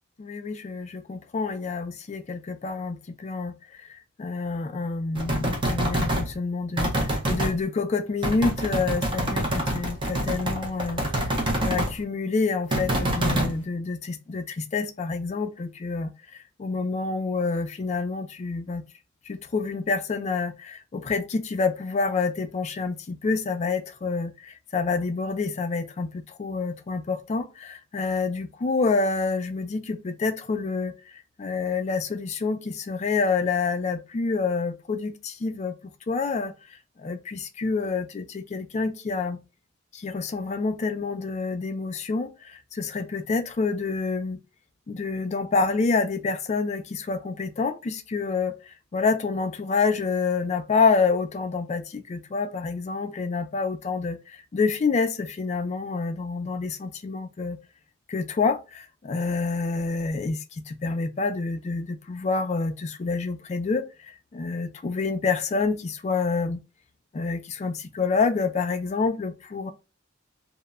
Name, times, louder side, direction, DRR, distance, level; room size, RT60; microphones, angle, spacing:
voice 1, 0.2-3.5 4.2-6.9 7.3-11.0 11.6-16.1 16.6-18.8 19.3-30.9 31.4-35.7 36.1-36.5 37.0-39.4 39.9-44.4 44.9-48.5 48.9-57.6 58.1-60.4 60.7-63.9 64.3-66.6 67.1-69.7, left 4 dB, 35° left, 0.3 m, -27 dB
sound 1, 5.2-6.3 6.8-7.5 8.2-11.9 12.7-13.5, right 1 dB, 25° right, 0.5 m, -26 dB
2.1 x 2.0 x 3.4 m
head